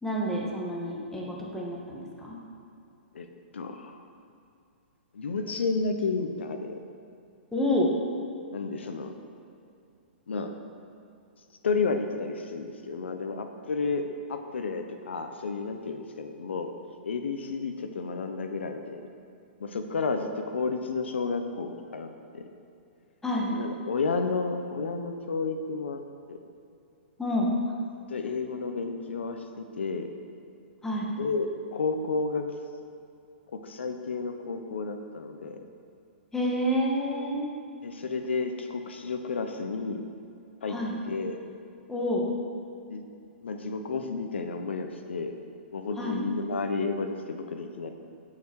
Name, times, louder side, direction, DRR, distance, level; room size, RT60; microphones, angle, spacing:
voice 1, 0.0-2.4 7.5-7.9 23.2-23.5 27.2-27.5 30.8-31.1 36.3-37.5 40.7-41.0 41.9-42.2 46.0-46.2, equal, 5° left, -3 dB, 2.0 m, -28 dB
voice 2, 3.5-4.0 5.1-6.8 8.5-9.1 10.3-10.5 11.6-14.0 14.3-16.7 17.0-19.1 19.6-22.1 22.3-22.5 23.5-26.0 26.3-26.4 28.1-30.1 31.2-32.5 33.5-35.6 37.8-40.0 40.6-40.8 41.1-41.4 42.9-43.0 43.4-45.3 45.7-47.9, left 4 dB, 80° left, 6 dB, 0.9 m, -31 dB
17.5 x 5.9 x 4.7 m, 2.6 s
hypercardioid pair, 130°, 6 cm